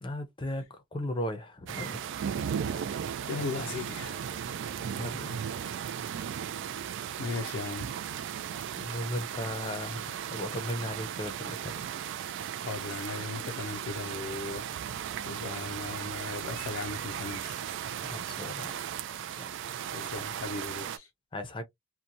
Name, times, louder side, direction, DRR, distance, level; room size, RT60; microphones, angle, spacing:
voice 1, 0.0-2.1 2.9-3.1 5.0-5.4 8.8-11.9 18.0-18.8 21.3-21.6, left 1 dB, 20° left, 0.6 m, -36 dB
sound 1, 1.7-21.0, right 8 dB, 55° right, 0.3 m, -36 dB
voice 2, 3.3-4.5 7.2-7.9 12.5-14.6 15.3-17.6 19.9-21.1, left 4 dB, 70° left, 0.4 m, -37 dB
2.8 x 2.2 x 2.5 m
head